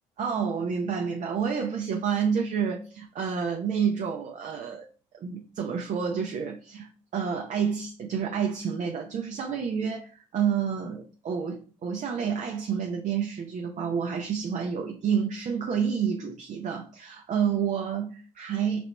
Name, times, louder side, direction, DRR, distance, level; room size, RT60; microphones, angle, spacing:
voice 1, 0.2-4.9 5.2-18.8, right 7 dB, 45° right, 0.5 m, -29 dB
5.0 x 2.8 x 2.2 m
hypercardioid pair, 55°, 18 cm